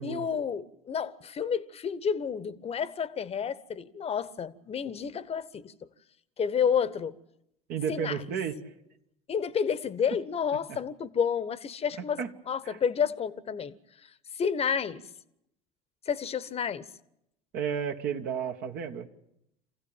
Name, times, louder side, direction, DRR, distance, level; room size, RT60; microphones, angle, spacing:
voice 1, 0.0-5.7 6.4-7.1 7.9-8.2 9.3-12.2 12.5-13.7 14.4-15.0 16.1-16.9, left 7 dB, 30° left, 1.2 m, -30 dB
voice 2, 7.7-8.7 12.2-12.3 12.6-12.8 17.5-19.1, right 7 dB, 55° right, 1.7 m, -32 dB
27.0 x 15.5 x 9.0 m
hypercardioid pair, 70°, 19 cm